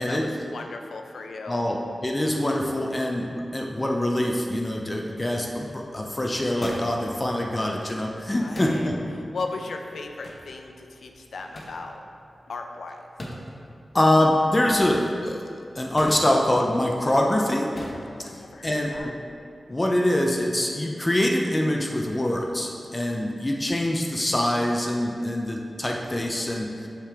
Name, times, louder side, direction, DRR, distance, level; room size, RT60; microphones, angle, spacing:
voice 1, 0.0-1.6 8.4-8.9 9.1-12.0 12.5-13.1 18.2-19.1, left 3 dB, 85° left, 4 dB, 0.5 m, -37 dB
voice 2, 1.5-8.9 9.2-9.4 13.9-15.4 15.8-17.7 18.6-19.1 19.7-26.9, left 1 dB, 20° left, 0 dB, 0.5 m, -24 dB
sound 1, 5.3-19.0, left 1 dB, 45° left, 0.9 m, -43 dB
7.4 x 5.2 x 3.5 m, 2.5 s
wide cardioid pair, 115°, 0 cm